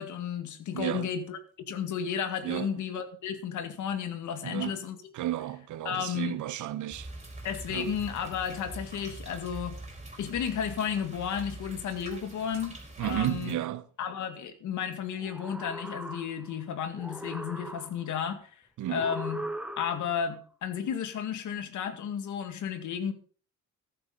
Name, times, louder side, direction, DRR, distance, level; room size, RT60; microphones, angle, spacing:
voice 1, 0.0-1.4 1.7-5.0 5.9-6.4 7.4-9.8 10.2-13.6 14.0-18.5 18.9-19.4 19.8-23.1, left 8 dB, 75° left, 2.0 m, -33 dB
voice 2, 0.7-1.1 2.4-2.7 4.4-4.8 5.1-7.1 7.7-7.9 13.0-13.9 18.8-19.1, right 13 dB, 75° right, 1.1 m, -32 dB
sound 1, 6.9-13.5, right 2 dB, 20° right, 4.4 m, -44 dB
sound 2, 15.2-16.6 17.0-18.2 18.9-20.2, right 1 dB, 5° right, 1.1 m, -39 dB
14.0 x 11.0 x 4.0 m
cardioid pair, 90°, 30 cm